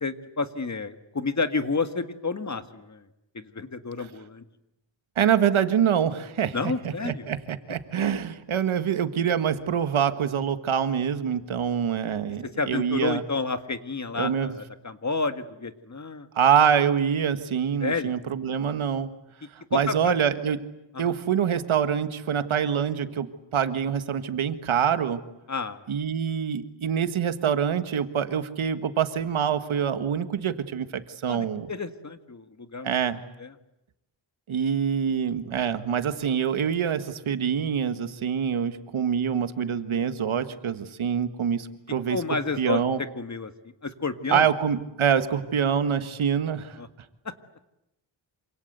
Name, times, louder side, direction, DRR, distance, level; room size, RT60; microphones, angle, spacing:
voice 1, 0.0-3.1 3.3-4.4 6.5-7.3 12.6-16.3 17.8-18.1 19.7-20.1 20.9-21.1 25.5-25.8 31.3-33.0 33.4-33.5 42.1-43.5 43.8-44.5 46.8-46.9, left 4 dB, 35° left, 9 dB, 1.9 m, -30 dB
voice 2, 5.2-6.6 6.8-13.2 14.2-14.5 16.4-19.1 19.7-20.6 21.0-25.2 25.9-31.7 32.8-33.2 34.5-42.2 42.6-43.0 44.3-46.8, right 8 dB, 80° right, 10 dB, 1.8 m, -25 dB
27.5 x 25.5 x 8.2 m, 0.87 s
wide cardioid pair, 100°, 47 cm